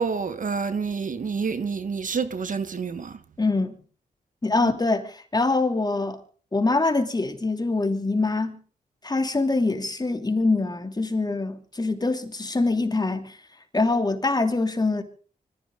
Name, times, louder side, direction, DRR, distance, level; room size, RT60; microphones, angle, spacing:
voice 1, 0.0-3.2 4.6-4.7, right 5 dB, 55° right, 1.5 m, -28 dB
voice 2, 3.4-3.8 4.4-6.2 6.5-8.6 9.0-13.4 13.7-15.0, left 3 dB, 25° left, 3.0 m, -24 dB
25.0 x 15.0 x 3.8 m
cardioid pair, 70°, 16 cm